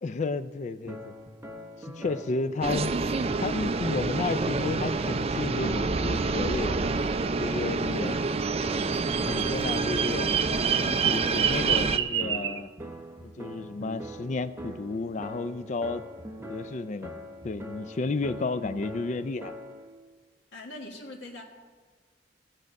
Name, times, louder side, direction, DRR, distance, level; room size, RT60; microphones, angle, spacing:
voice 1, 0.0-1.1 1.8-2.9 3.4-6.8 7.4-8.2 9.3-10.3 10.8-12.7 13.2-16.0 16.5-17.2 17.4-19.5, left 3 dB, 40° left, 12 dB, 0.4 m, -32 dB
sound 1, 0.9-19.9, equal, 15° right, 1.0 m, -42 dB
sound 2, 2.6-12.0, right 3 dB, 35° right, 0.4 m, -28 dB
Bird vocalization bird call bird song, 8.8-12.6, right 10 dB, 85° right, 0.6 m, -29 dB
voice 2, 20.5-21.4, left 2 dB, 80° left, 0 dB, 1.4 m, -42 dB
15.5 x 7.6 x 5.3 m, 1.5 s
head